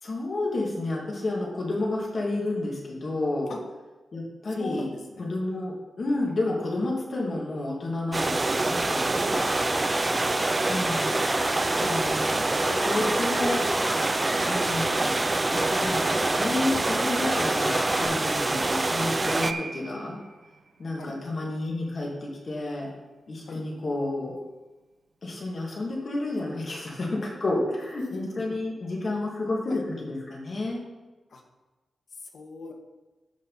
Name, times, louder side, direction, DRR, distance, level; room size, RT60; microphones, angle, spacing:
voice 1, 0.0-3.6 4.1-4.9 5.2-9.4 10.7-11.1 11.7-12.4 12.9-13.6 14.5-15.2 15.5-20.2 20.8-22.9 23.3-24.3 25.2-29.8 30.3-30.8, left 2 dB, 45° left, -2 dB, 2.6 m, -30 dB
voice 2, 4.6-5.3 11.0-11.3 12.4-13.2 14.3-14.6 18.5-18.6 21.0-21.1 23.5-23.6 29.7-29.8 31.3-31.4 32.2-32.7, left 3 dB, 70° left, 2 dB, 1.6 m, -40 dB
sound 1, 8.1-19.5, right 2 dB, 25° right, 0.4 m, -26 dB
sound 2, 9.3-18.1, equal, 5° left, 1.5 m, -33 dB
Piano, 19.4-26.4 26.6-26.7, right 3 dB, 55° right, 1.8 m, -44 dB
13.5 x 5.3 x 4.2 m, 1.2 s
wide cardioid pair, 105°, 0 cm